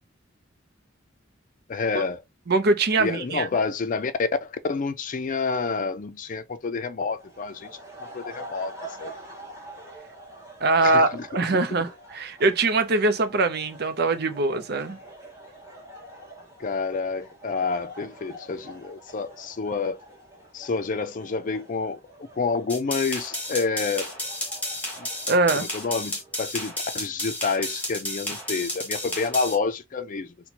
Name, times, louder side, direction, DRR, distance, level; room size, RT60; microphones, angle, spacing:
voice 1, 1.7-2.2 3.0-7.7 8.1-8.7 9.0-9.1 10.8-11.3 16.6-20.0 20.5-22.0 22.4-24.1 25.0-25.1 25.5-30.3, left 4 dB, 45° left, 0.4 m, -28 dB
voice 2, 2.5-3.5 10.6-15.0 25.3-25.7, right 3 dB, 55° right, 0.6 m, -22 dB
sound 1, 7.1-26.4, right 1 dB, 15° right, 1.9 m, -46 dB
sound 2, 22.7-29.5, left 1 dB, 10° left, 1.3 m, -32 dB
4.2 x 2.2 x 2.8 m
head